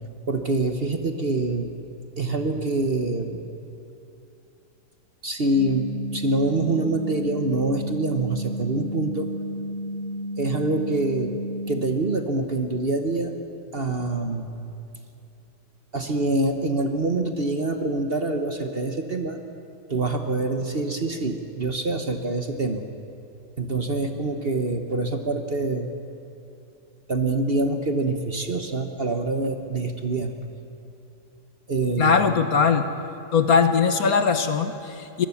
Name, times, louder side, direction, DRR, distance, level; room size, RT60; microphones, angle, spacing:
voice 1, 0.3-1.7 2.2-3.4 5.2-9.3 10.4-11.3 11.7-13.3 13.7-14.5 15.9-19.4 19.9-22.8 23.6-25.9 27.1-30.3 31.7-32.1, right 2 dB, 40° right, 6 dB, 1.2 m, -25 dB
sound 1, 5.6-11.9, equal, 75° left, 6.2 m, -32 dB
voice 2, 32.0-32.9 33.3-35.3, left 5 dB, 60° left, 8 dB, 1.5 m, -20 dB
23.0 x 21.5 x 7.1 m, 2.7 s
omnidirectional pair, 1.9 m